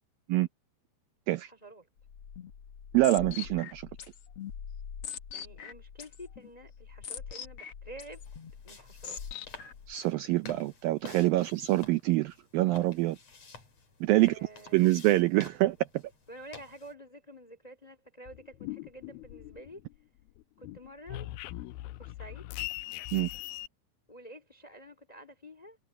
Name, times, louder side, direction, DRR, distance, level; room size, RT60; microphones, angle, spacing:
voice 1, 1.4-1.9 5.3-8.2 8.6-9.2 14.1-14.9 16.3-19.8 20.6-21.3 22.0-22.5 24.1-25.8, right 1 dB, 10° left, 1.9 m, -49 dB
sound 1, 2.0-9.9, left 8 dB, 60° left, 1.5 m, -43 dB
voice 2, 2.9-3.9 9.9-13.2 14.0-14.3 14.7-15.8 23.1-23.3, right 17 dB, 85° right, 2.0 m, -25 dB
sound 2, 8.1-16.9, left 5 dB, 40° left, 5.2 m, -52 dB
sound 3, 18.3-20.0 20.3-23.7, left 17 dB, 85° left, 2.2 m, -41 dB
omnidirectional pair, 4.9 m